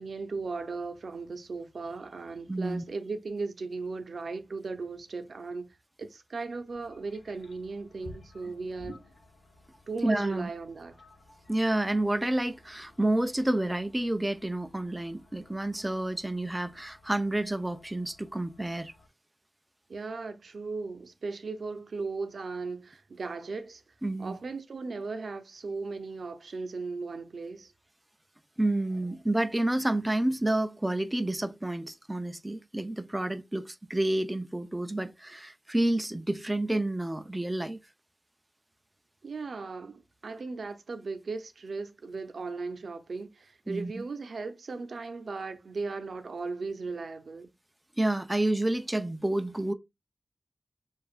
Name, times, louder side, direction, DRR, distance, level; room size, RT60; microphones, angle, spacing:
voice 1, 0.0-5.6 6.0-9.0 9.9-10.9 19.9-23.8 24.2-27.7 39.2-47.5, right 4 dB, 75° right, 0.6 m, -37 dB
voice 2, 2.5-2.8 10.0-10.5 11.5-18.9 24.0-24.4 28.6-37.8 43.7-44.0 48.0-49.7, right 1 dB, 15° right, 0.4 m, -29 dB
sound 1, 6.7-19.1, left 2 dB, 70° left, 1.1 m, -55 dB
6.8 x 2.4 x 2.4 m
wide cardioid pair, 105°, 0 cm